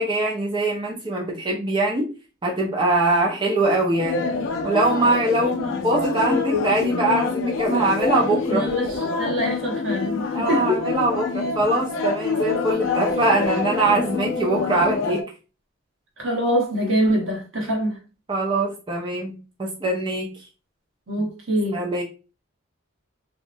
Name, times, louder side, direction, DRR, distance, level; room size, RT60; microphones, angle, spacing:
voice 1, 0.0-2.1 2.4-4.2 4.6-8.7 10.3-15.2 18.3-20.3 21.7-22.0, right 2 dB, 25° right, 0.4 m, -22 dB
sound 1, 3.9-15.2, left 4 dB, 75° left, 0.4 m, -26 dB
voice 2, 8.5-10.8 16.2-18.0 21.1-21.8, equal, 75° right, 1.0 m, -24 dB
2.7 x 2.1 x 2.5 m
head